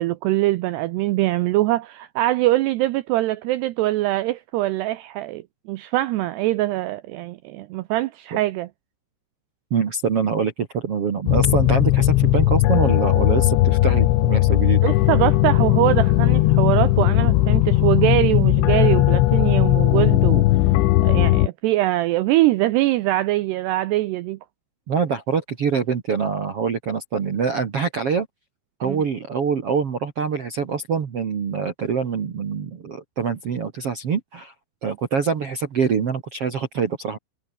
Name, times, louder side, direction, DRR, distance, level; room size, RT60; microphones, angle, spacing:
voice 1, 0.0-5.4 5.7-8.7 14.8-20.4 21.0-24.4 28.8-29.0, right 16 dB, 80° right, 2.4 m, -22 dB
voice 2, 9.7-14.8 24.9-28.3 28.8-34.5 34.8-37.2, right 6 dB, 55° right, 1.6 m, -24 dB
sound 1, 11.3-21.5, left 16 dB, 75° left, 3.4 m, -17 dB
omnidirectional pair, 5.5 m